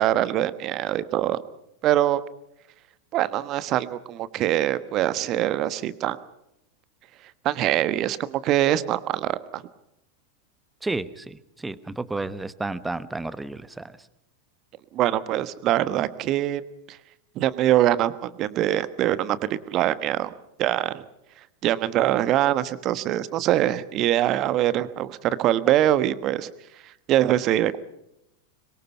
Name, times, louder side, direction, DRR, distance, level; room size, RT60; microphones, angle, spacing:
voice 1, 0.0-1.4 1.8-2.2 3.1-6.2 7.4-9.6 14.9-16.6 16.9-17.0 17.3-20.3 20.6-21.0 21.6-26.5 26.8-27.8, right 13 dB, 35° right, 15 dB, 1.2 m, -23 dB
voice 2, 10.8-14.0, right 2 dB, 10° right, 15 dB, 1.1 m, -32 dB
25.5 x 23.0 x 5.6 m, 0.84 s
figure-of-eight pair, 90°, 0 cm